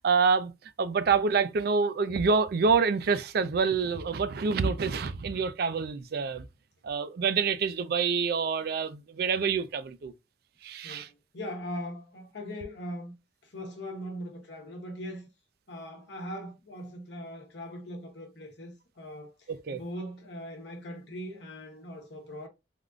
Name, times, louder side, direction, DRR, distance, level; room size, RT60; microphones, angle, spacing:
voice 1, 0.0-0.5 0.8-6.5 6.8-10.1 10.6-11.1 19.7-19.8, right 5 dB, 60° right, 0.4 m, -27 dB
voice 2, 10.8-13.1 13.4-15.3 15.7-22.5, equal, 75° left, 0.9 m, -40 dB
3.5 x 2.5 x 2.3 m
head